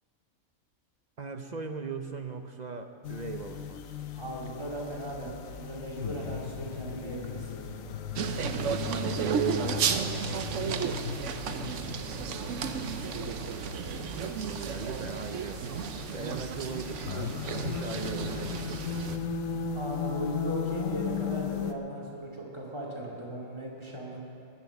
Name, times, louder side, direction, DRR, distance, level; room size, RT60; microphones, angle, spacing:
voice 1, 1.2-3.8 14.2-18.7, right 4 dB, 45° right, 6 dB, 0.6 m, -39 dB
sound 1, 3.0-21.7, left 7 dB, 75° left, 1.1 m, -37 dB
voice 2, 4.1-8.1 8.8-9.9 19.7-24.2, right 1 dB, 20° right, -3 dB, 2.4 m, -38 dB
sound 2, 8.2-19.2, right 7 dB, 65° right, 1.0 m, -33 dB
19.5 x 7.2 x 7.0 m, 2.4 s
omnidirectional pair, 1.4 m